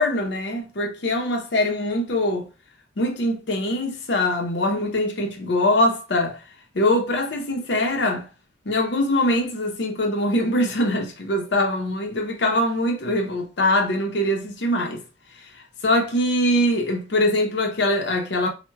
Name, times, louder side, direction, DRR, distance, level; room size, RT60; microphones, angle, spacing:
voice 1, 0.0-2.5 3.0-6.4 6.7-8.3 8.7-15.0 15.8-18.5, left 1 dB, 90° left, 0.7 m, -22 dB
4.5 x 2.1 x 2.2 m
head